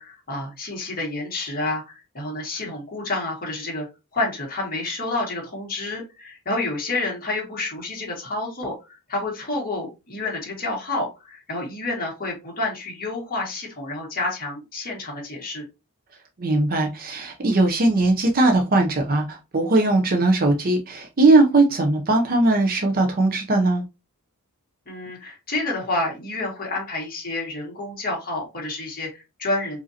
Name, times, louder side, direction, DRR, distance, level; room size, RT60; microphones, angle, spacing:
voice 1, 0.0-3.9 4.1-15.6 24.9-29.8, left 2 dB, 40° left, 2.0 m, -29 dB
voice 2, 16.4-23.8, right 2 dB, 40° right, 0.7 m, -19 dB
4.9 x 2.7 x 2.8 m
head